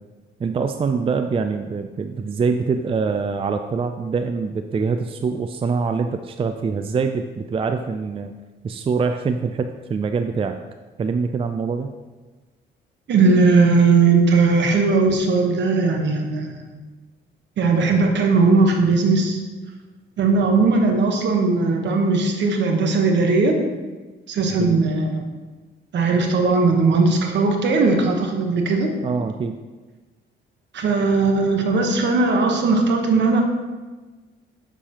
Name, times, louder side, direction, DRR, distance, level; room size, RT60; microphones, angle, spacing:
voice 1, 0.4-8.3 8.6-10.6 11.0-11.9 24.6-24.8 29.0-29.6, right 5 dB, 30° right, 7 dB, 0.4 m, -24 dB
voice 2, 13.1-16.8 17.6-19.4 20.2-23.6 24.3-25.2 25.9-28.9 30.7-33.4, right 3 dB, 65° right, 3 dB, 1.2 m, -18 dB
7.1 x 6.8 x 3.0 m, 1.3 s
cardioid pair, 90°, 20 cm